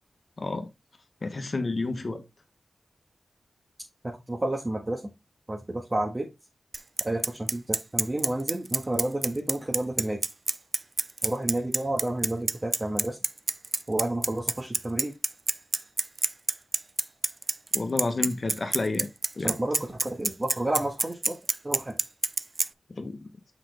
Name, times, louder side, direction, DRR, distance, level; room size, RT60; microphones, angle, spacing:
voice 1, 0.4-0.7 1.2-2.2 17.7-19.1 19.4-19.6 22.9-23.3, left 3 dB, 55° left, 1.2 m, -30 dB
voice 2, 4.0-5.0 5.5-6.3 7.0-10.2 11.2-13.2 13.9-15.1 19.4-21.3 21.6-21.9, right 1 dB, 30° right, 1.7 m, -30 dB
Bicycle, 6.7-22.7, right 3 dB, 45° right, 0.4 m, -26 dB
5.9 x 5.1 x 3.4 m
cardioid pair, 55°, 0 cm